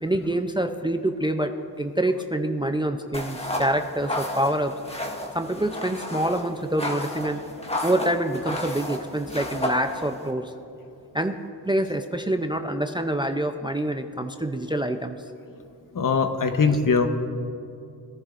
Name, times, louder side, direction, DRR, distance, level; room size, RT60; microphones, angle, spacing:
voice 1, 0.0-1.5 1.8-4.7 5.3-7.4 7.8-10.5 11.1-11.4 11.7-15.2, right 1 dB, 10° right, 7 dB, 0.5 m, -26 dB
sound 1, 3.1-10.3, left 1 dB, 15° left, 1.3 m, -32 dB
voice 2, 15.9-17.1, left 5 dB, 50° left, 7 dB, 1.0 m, -21 dB
20.5 x 10.5 x 2.5 m, 2.6 s
cardioid pair, 75°, 42 cm